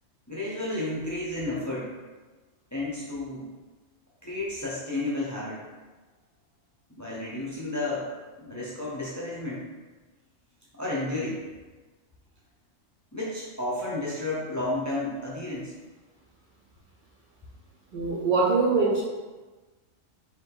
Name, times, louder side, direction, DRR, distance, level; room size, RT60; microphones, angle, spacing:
voice 1, 0.3-1.9 2.7-3.5 4.2-5.6 7.0-8.1 8.4-9.6 10.8-11.4 13.1-15.7, left 2 dB, 15° left, -6 dB, 0.6 m, -32 dB
voice 2, 17.9-19.0, right 3 dB, 50° right, -7 dB, 0.7 m, -23 dB
3.3 x 2.9 x 4.6 m, 1.3 s
omnidirectional pair, 1.4 m